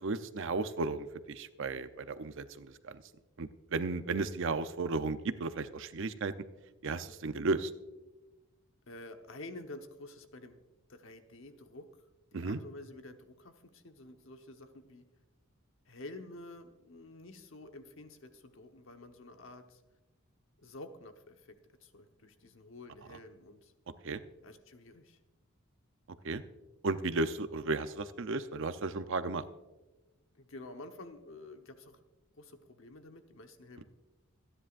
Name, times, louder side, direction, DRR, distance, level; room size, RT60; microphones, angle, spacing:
voice 1, 0.0-3.0 3.4-6.3 6.8-7.7 12.3-12.6 24.0-24.2 26.2-26.4 26.8-29.4, right 3 dB, 60° right, 11 dB, 0.6 m, -34 dB
voice 2, 8.9-10.6 10.9-11.9 12.3-15.1 15.8-19.8 20.6-23.7 24.4-25.2 30.3-32.0 32.3-33.8, left 2 dB, 65° left, 6 dB, 1.1 m, -50 dB
26.0 x 10.0 x 2.5 m, 1.1 s
head